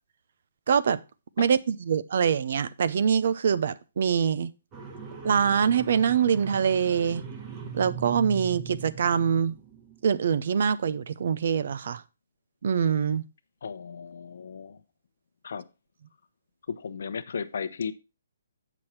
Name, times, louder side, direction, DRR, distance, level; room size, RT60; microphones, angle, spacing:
voice 1, 0.7-1.0 1.4-4.5 5.2-7.2 7.7-9.5 10.0-12.0 12.6-13.2, right 7 dB, 60° right, 0.6 m, -24 dB
sound 1, 4.7-10.0, right 6 dB, 25° right, 1.3 m, -40 dB
voice 2, 13.6-14.8 15.4-15.7 16.7-17.9, left 6 dB, 65° left, 0.8 m, -35 dB
7.9 x 6.2 x 4.2 m
hypercardioid pair, 150°, 0 cm